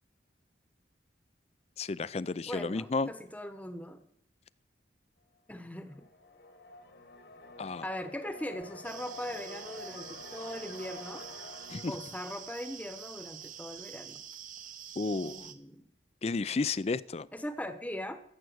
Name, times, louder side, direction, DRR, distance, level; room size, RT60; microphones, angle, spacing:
voice 1, 1.8-3.1 7.6-7.9 11.7-12.0 15.0-15.5 16.2-17.3, left 3 dB, 35° left, 18 dB, 0.4 m, -32 dB
voice 2, 2.5-4.0 5.5-6.1 7.8-11.2 11.9-14.2 15.0-15.9 17.3-18.2, left 1 dB, 10° left, 9 dB, 1.0 m, -40 dB
sound 1, 5.7-13.5, left 2 dB, 60° left, 1.5 m, -49 dB
sound 2, 8.8-15.5, right 9 dB, 45° right, 1.0 m, -47 dB
14.0 x 7.5 x 7.9 m, 0.72 s
head